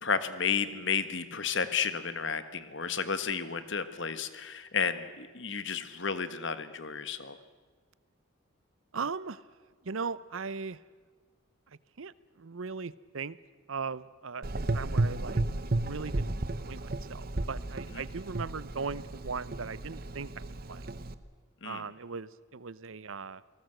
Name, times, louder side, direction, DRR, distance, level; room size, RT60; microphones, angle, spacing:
voice 1, 0.0-7.4 17.9-18.0 21.6-21.8, left 6 dB, 55° left, 12 dB, 1.3 m, -32 dB
voice 2, 8.9-9.4 9.8-10.8 11.7-13.4 13.7-15.4 15.7-20.9 21.6-23.4, right 5 dB, 70° right, 18 dB, 0.7 m, -39 dB
Gurgling / Engine, 14.4-21.1, right 2 dB, 45° right, 0.9 m, -33 dB
28.0 x 19.0 x 7.9 m, 1.5 s
head